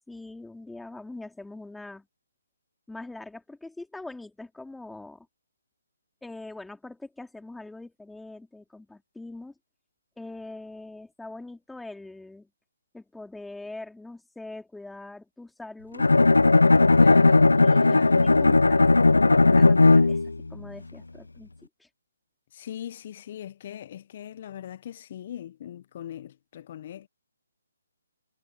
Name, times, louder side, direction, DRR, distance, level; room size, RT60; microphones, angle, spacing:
voice 1, 0.1-2.1 2.9-5.3 6.2-9.5 10.2-12.5 12.9-16.1 17.5-20.2 20.5-21.5 21.8-21.9, left 2 dB, 5° left, 4.0 m, -43 dB
Bowed string instrument, 16.0-20.4, left 3 dB, 80° left, 0.5 m, -17 dB
voice 2, 16.9-17.6 17.9-18.2 22.5-27.1, left 10 dB, 40° left, 1.0 m, -40 dB
figure-of-eight pair, 145°, 0 cm